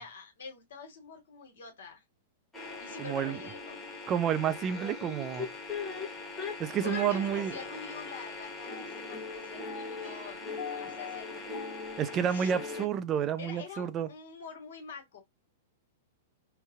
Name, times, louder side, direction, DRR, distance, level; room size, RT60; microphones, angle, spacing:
voice 1, 0.0-2.0 2.8-3.8 6.8-11.4 12.3-12.5 13.4-15.2, left 5 dB, 70° left, 1.4 m, -46 dB
sound 1, 2.5-12.9, left 4 dB, 10° left, 1.2 m, -39 dB
voice 2, 3.0-3.4 4.1-5.5 6.6-7.6 12.0-14.1, right 8 dB, 30° right, 0.4 m, -30 dB
3.9 x 2.2 x 2.5 m
hypercardioid pair, 110°, 0 cm